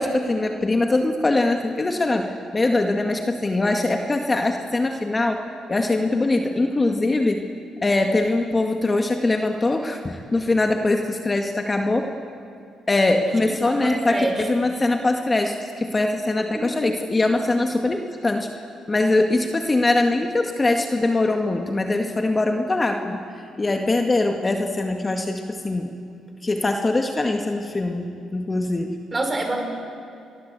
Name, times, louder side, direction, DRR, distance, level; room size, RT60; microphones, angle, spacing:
voice 1, 0.0-5.4 5.7-7.4 7.8-12.1 12.9-18.5 18.9-23.2 23.6-25.9 26.4-29.0, left 2 dB, 25° left, 4 dB, 2.0 m, -22 dB
voice 2, 13.6-14.4 14.6-14.7 16.5-16.7 29.1-29.6, right 2 dB, 25° right, 4 dB, 5.3 m, -26 dB
29.0 x 22.5 x 8.3 m, 2.5 s
cardioid pair, 90°, 0 cm